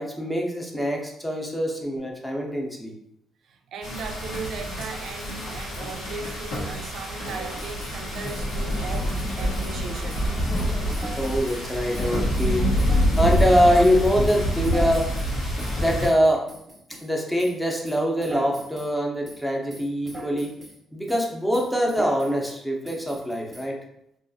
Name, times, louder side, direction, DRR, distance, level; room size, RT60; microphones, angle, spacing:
voice 1, 0.0-2.9 11.2-12.6 13.2-15.1 15.7-16.4 17.0-20.5 20.9-23.8, equal, 5° left, 0.6 m, -23 dB
voice 2, 3.5-10.3, right 5 dB, 70° right, 0.3 m, -37 dB
sound 1, 3.8-16.1, equal, 90° left, 1.0 m, -26 dB
sound 2, 7.4-8.0 8.3-9.8 10.1-10.3 10.5-11.7 11.9-13.6 13.8-17.1 17.4-17.6 17.8-18.9 19.2-19.4 19.7-20.8 21.1-21.3 21.5-22.5 22.8-23.7, right 2 dB, 25° right, 0.7 m, -41 dB
2.6 x 2.3 x 2.6 m
cardioid pair, 90°, 0 cm